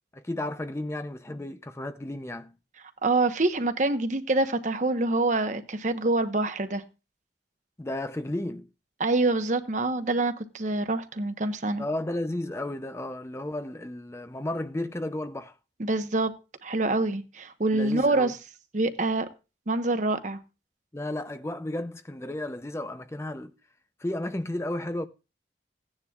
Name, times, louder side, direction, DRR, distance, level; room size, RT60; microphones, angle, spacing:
voice 1, 0.1-2.5 7.8-8.7 11.8-15.6 17.7-18.3 20.9-23.5 24.0-25.1, left 1 dB, 15° left, 0.5 m, -33 dB
voice 2, 3.0-6.8 9.0-11.8 15.8-16.3 16.6-18.4 18.7-19.3 19.7-20.4, right 2 dB, 45° right, 1.0 m, -26 dB
16.5 x 9.7 x 2.3 m
head